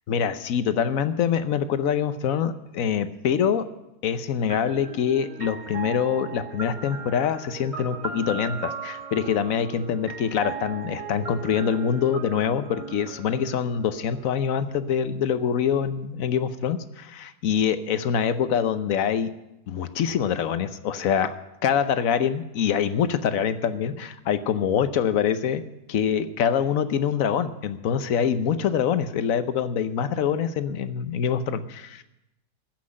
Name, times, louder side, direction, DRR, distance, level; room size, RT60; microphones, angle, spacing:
voice 1, 0.1-3.7 4.0-19.3 19.7-21.3 21.6-32.0, left 8 dB, 60° left, 11 dB, 1.1 m, -25 dB
sound 1, 4.5-14.3, right 5 dB, 20° right, 1.5 m, -38 dB
14.5 x 6.1 x 9.7 m, 0.90 s
omnidirectional pair, 1.8 m